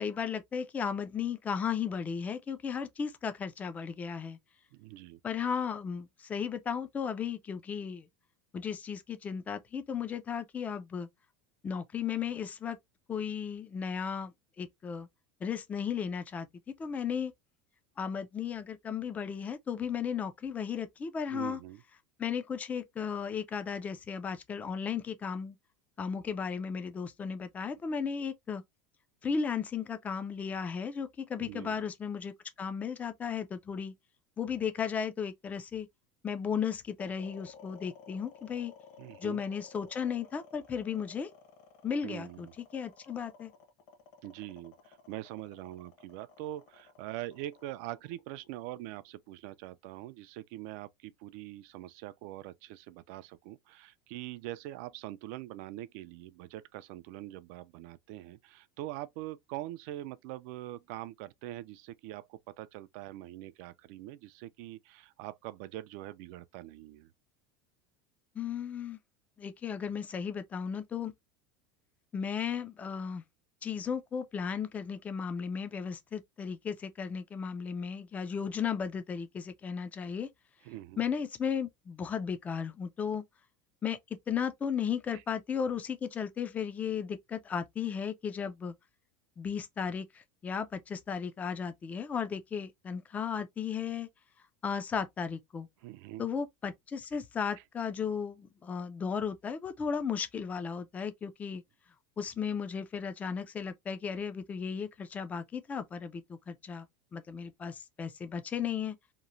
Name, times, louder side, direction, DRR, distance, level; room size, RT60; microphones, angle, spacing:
voice 1, 0.0-4.4 5.2-8.1 8.5-11.1 11.6-12.8 13.1-15.1 15.4-16.5 16.8-17.3 18.0-21.6 22.2-25.6 26.0-28.6 29.2-32.3 32.6-33.9 34.4-35.9 36.2-38.7 39.2-41.3 41.8-42.5 42.7-43.5 68.4-69.0 69.4-71.1 72.1-73.2 73.6-80.3 81.0-83.2 83.8-84.0 84.3-88.7 89.4-94.1 94.6-95.7 96.2-101.6 102.2-106.9 107.1-109.0, left 7 dB, 15° left, 0.3 m, -35 dB
voice 2, 4.7-5.2 21.3-21.8 31.4-31.8 39.0-39.4 42.0-42.5 44.2-67.1 80.6-81.0 85.1-85.2 95.8-96.3 97.5-97.6, right 15 dB, 60° right, 0.3 m, -43 dB
sound 1, 37.0-49.3, left 5 dB, 50° left, 1.0 m, -55 dB
2.9 x 2.1 x 2.5 m
supercardioid pair, 150°, 9 cm